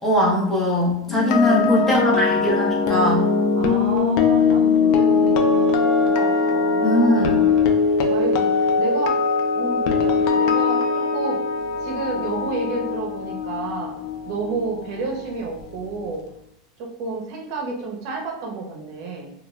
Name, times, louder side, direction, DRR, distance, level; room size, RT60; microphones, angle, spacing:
voice 1, 0.0-3.2 6.8-7.4, left 1 dB, 15° left, -4 dB, 0.7 m, -20 dB
sound 1, 1.1-15.2 15.4-15.7, left 5 dB, 50° left, 0.3 m, -21 dB
voice 2, 1.4-2.3 3.6-7.5 8.1-9.2 9.5-9.8 10.3-11.4 11.8-13.9 14.3-16.2 16.8-19.3, right 4 dB, 50° right, 0 dB, 0.7 m, -30 dB
2.3 x 2.1 x 3.0 m, 0.76 s
supercardioid pair, 150°, 2 cm